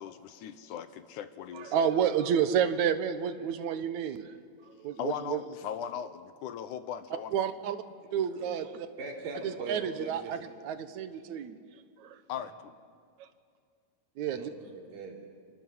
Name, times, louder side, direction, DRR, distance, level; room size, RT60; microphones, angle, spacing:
voice 1, 0.0-1.9 5.0-7.5 12.3-12.7, left 9 dB, 75° left, 11 dB, 2.2 m, -39 dB
voice 2, 1.5-4.3 4.8-5.4 7.3-7.8 8.1-8.9 9.4-11.6 12.0-12.2 14.2-14.5, right 8 dB, 65° right, 10 dB, 2.3 m, -30 dB
voice 3, 9.0-10.4 14.3-15.3, right 4 dB, 90° right, 0 dB, 5.5 m, -41 dB
28.5 x 25.0 x 7.8 m, 2.1 s
omnidirectional pair, 4.0 m